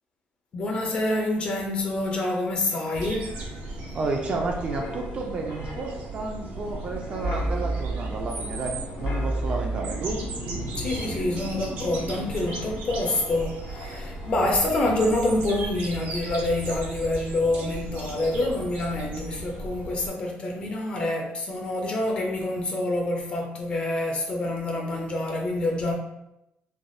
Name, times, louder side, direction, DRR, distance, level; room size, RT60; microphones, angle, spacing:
voice 1, 0.5-3.3 10.8-25.9, left 2 dB, 35° left, 0 dB, 0.4 m, -27 dB
Wind, 2.6-14.9 15.2-15.5, right 1 dB, 85° left, 0.6 m, -36 dB
sound 1, 2.9-20.1, right 2 dB, 90° right, 0.7 m, -36 dB
voice 2, 3.9-10.2, right 3 dB, 35° right, 1 dB, 0.3 m, -31 dB
3.3 x 2.2 x 2.6 m, 0.87 s
cardioid pair, 165°, 3 cm